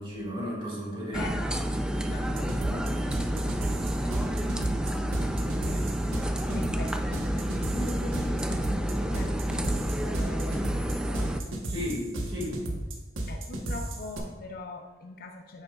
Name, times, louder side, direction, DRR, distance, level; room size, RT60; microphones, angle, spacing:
voice 1, 0.0-1.3 11.7-12.6, equal, 25° right, -5 dB, 2.3 m, -34 dB
voice 2, 1.1-1.5 2.1-4.8 5.2-6.0 6.4-11.6 13.3-15.6, left 2 dB, 50° left, 3 dB, 0.5 m, -43 dB
sound 1, 1.1-11.4, right 1 dB, 5° right, 0.4 m, -29 dB
sound 2, 2.3-14.2, right 1 dB, 85° right, 1.1 m, -34 dB
8.7 x 6.2 x 2.4 m, 1.2 s
head